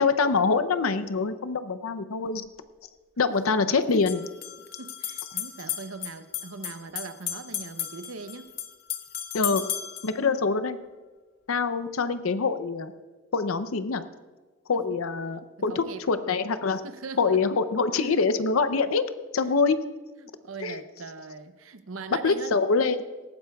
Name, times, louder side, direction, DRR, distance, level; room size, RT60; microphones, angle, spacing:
voice 1, 0.0-2.4 3.2-4.3 9.3-9.6 10.0-10.8 11.5-12.9 13.3-14.1 14.7-16.8 17.2-19.0 19.3-19.8 20.6-20.8 22.2-23.0, left 4 dB, 90° left, 0.6 m, -25 dB
sound 1, 2.3-2.4 3.9-10.2, left 11 dB, 45° left, 0.7 m, -35 dB
voice 2, 4.6-8.5 9.5-9.6 14.7-14.8 15.7-16.0 16.8-17.6 18.0-18.1 19.4-19.6 20.2-22.7, right 4 dB, 85° right, 0.7 m, -41 dB
18.5 x 14.5 x 2.3 m
head